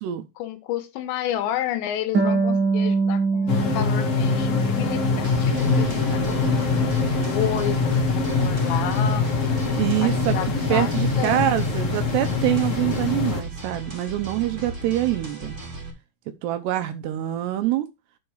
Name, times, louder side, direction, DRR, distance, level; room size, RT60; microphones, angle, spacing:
voice 1, 0.4-9.2 10.0-10.9 11.2-11.5, left 11 dB, 80° left, 3.1 m, -31 dB
Harp, 2.1-5.5 5.9-6.9, right 4 dB, 60° right, 1.1 m, -25 dB
sound 1, 3.5-13.4, left 4 dB, 55° left, 1.7 m, -23 dB
sound 2, 5.2-15.9, right 3 dB, 20° right, 1.9 m, -36 dB
voice 2, 9.8-10.4 10.7-15.5 16.4-17.9, right 14 dB, 80° right, 2.6 m, -25 dB
9.8 x 5.4 x 4.7 m
omnidirectional pair, 5.3 m